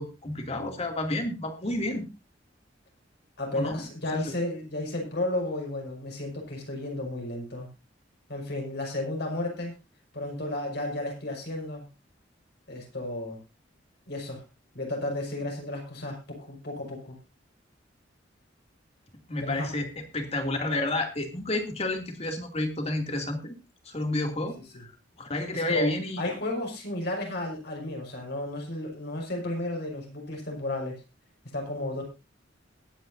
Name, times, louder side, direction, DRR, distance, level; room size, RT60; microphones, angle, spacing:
voice 1, 0.0-2.1 3.5-3.9 4.1-4.2 19.3-19.9 20.1-23.5 23.9-24.9 25.2-26.2, left 1 dB, 35° left, 4 dB, 2.6 m, -30 dB
voice 2, 3.4-7.7 8.3-9.7 10.1-11.8 12.7-13.4 14.1-14.4 14.7-17.2 19.4-19.7 24.7-24.8 25.5-25.9 26.2-31.0 31.5-32.0, left 1 dB, 65° left, 0 dB, 5.9 m, -33 dB
21.5 x 9.7 x 2.7 m, 0.27 s
head